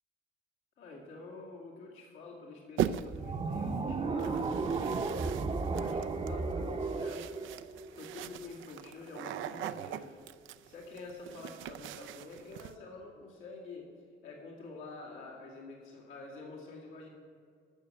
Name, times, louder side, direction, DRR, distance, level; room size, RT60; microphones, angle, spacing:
voice 1, 0.8-10.1 10.6-13.9 14.2-17.1, left 3 dB, 90° left, -3 dB, 2.3 m, -48 dB
sound 1, 2.8-3.3 4.2-12.7, right 11 dB, 85° right, 0.4 m, -40 dB
sound 2, 3.1-8.3, right 4 dB, 30° right, 0.7 m, -34 dB
13.0 x 6.5 x 7.0 m, 2.2 s
cardioid pair, 90°, 20 cm